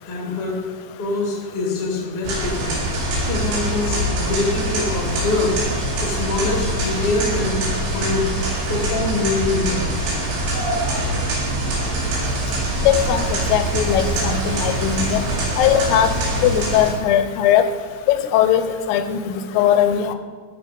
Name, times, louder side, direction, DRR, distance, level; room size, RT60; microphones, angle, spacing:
voice 1, 0.0-0.6 1.0-2.7 3.2-5.5 6.0-7.6 7.9-8.3 8.7-9.9, left 3 dB, 50° left, -1 dB, 0.6 m, -24 dB
sound 1, 2.2-16.9, right 1 dB, 80° right, 4.7 m, -23 dB
voice 2, 12.9-15.2 15.6-16.1 16.4-17.7 18.1-18.6 18.9-20.2, left 10 dB, 80° left, 9 dB, 2.4 m, -19 dB
13.0 x 5.2 x 5.3 m, 1.5 s
omnidirectional pair, 5.1 m